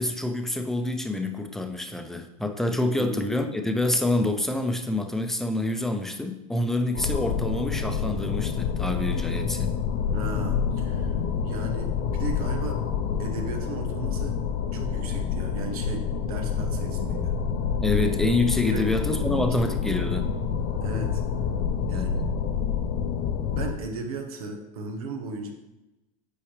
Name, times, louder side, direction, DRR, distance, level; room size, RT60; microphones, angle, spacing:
voice 1, 0.0-9.7 17.8-20.3 21.9-22.3, left 2 dB, ahead, 6 dB, 0.6 m, -27 dB
sound 1, 6.9-23.7, left 6 dB, 60° left, 0.7 m, -28 dB
voice 2, 10.1-11.2 11.4-12.9 13.2-14.4 14.7-17.3 18.7-19.5 20.8-21.2 21.9-22.2 23.5-25.5, right 3 dB, 85° right, 4 dB, 1.2 m, -36 dB
8.6 x 4.8 x 3.2 m, 0.97 s
supercardioid pair, 120°, 18 cm